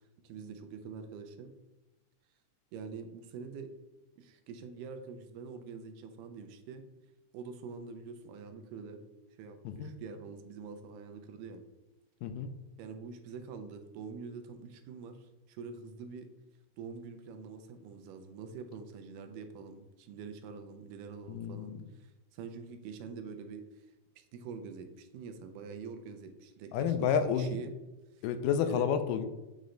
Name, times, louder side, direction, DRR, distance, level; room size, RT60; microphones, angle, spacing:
voice 1, 0.2-1.5 2.7-3.7 4.2-6.8 7.3-9.0 9.4-11.6 12.8-16.3 16.8-23.6 24.2-27.7 28.7-28.9, right 5 dB, 80° right, 7 dB, 2.2 m, -45 dB
voice 2, 21.3-21.8 26.7-27.6 28.2-29.2, left 7 dB, 80° left, 9 dB, 2.1 m, -30 dB
8.9 x 3.2 x 3.8 m, 1.1 s
omnidirectional pair, 3.8 m